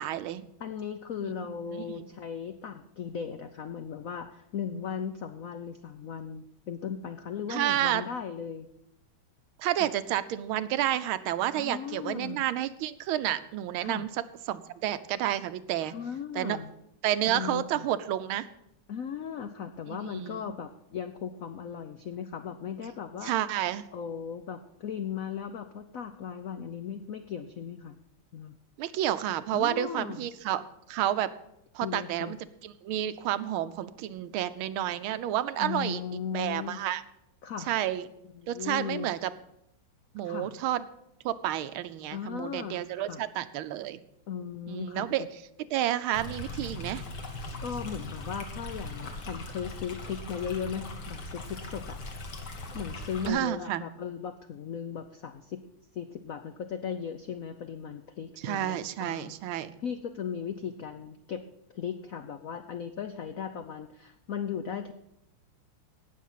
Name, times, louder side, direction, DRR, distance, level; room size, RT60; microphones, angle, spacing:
voice 1, 0.0-0.4 1.2-1.3 1.7-2.1 7.5-8.0 9.6-14.1 14.5-15.9 16.3-16.6 17.0-18.5 19.9-20.4 23.2-23.8 28.8-30.6 30.9-31.3 31.7-32.4 32.6-37.0 37.7-38.0 38.5-39.3 40.1-40.8 41.2-44.0 44.7-45.3 45.7-47.0 53.3-53.8 58.4-59.7, right 12 dB, 80° right, 13 dB, 1.5 m, -30 dB
voice 2, 0.6-8.7 9.8-9.9 11.5-12.4 13.8-14.1 15.8-16.7 17.3-17.9 18.9-23.4 23.9-28.0 28.3-28.5 29.5-30.3 31.8-32.4 35.6-36.8 37.4-37.7 38.2-39.1 40.2-40.5 42.1-43.2 44.3-45.3 47.6-52.0 52.7-55.6 55.9-61.5 61.7-64.9, left 7 dB, 80° left, 8 dB, 0.7 m, -37 dB
Stream, 46.1-53.3, left 2 dB, 55° left, 2.1 m, -40 dB
17.5 x 6.6 x 5.6 m, 0.81 s
omnidirectional pair, 2.3 m